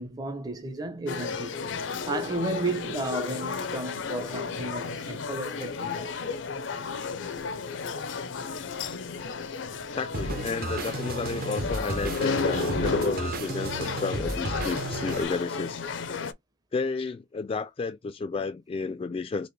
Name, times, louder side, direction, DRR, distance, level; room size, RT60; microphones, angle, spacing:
voice 1, 0.0-1.6 2.0-6.1, right 2 dB, 20° right, 0.6 m, -33 dB
sound 1, 1.1-16.3, left 4 dB, 90° left, 0.6 m, -33 dB
voice 2, 9.9-15.8 16.7-19.5, left 4 dB, 30° left, 0.3 m, -32 dB
sound 2, 10.1-15.2, right 2 dB, 55° right, 0.8 m, -33 dB
4.2 x 2.9 x 3.1 m
head